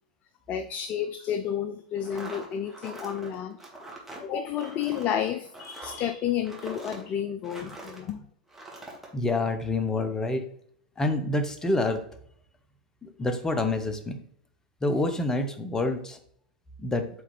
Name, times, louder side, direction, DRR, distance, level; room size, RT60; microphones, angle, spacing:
voice 1, 0.5-3.6 4.2-8.2, left 9 dB, 35° left, 9 dB, 0.4 m, -31 dB
sound 1, 1.9-8.1 8.5-9.1, right 2 dB, 5° right, 1.7 m, -43 dB
voice 2, 9.1-10.4 11.0-12.0 13.0-14.2 14.8-16.2 16.8-17.1, left 2 dB, 15° left, 8 dB, 0.8 m, -27 dB
7.9 x 3.7 x 3.2 m, 0.65 s
figure-of-eight pair, 90°, 4 cm